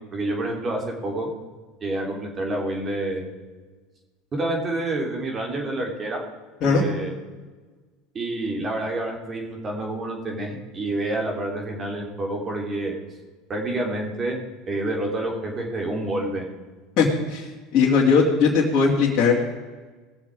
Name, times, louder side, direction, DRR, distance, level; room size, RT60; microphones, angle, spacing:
voice 1, 0.1-1.3 1.8-3.3 4.3-6.2 6.6-7.2 8.1-13.0 13.5-14.4 14.7-16.4, right 2 dB, 30° right, 1 dB, 3.5 m, -28 dB
voice 2, 17.0-17.5 17.7-19.3, left 5 dB, 50° left, -6 dB, 2.5 m, -19 dB
20.0 x 7.2 x 4.9 m, 1.4 s
hypercardioid pair, 90°, 0 cm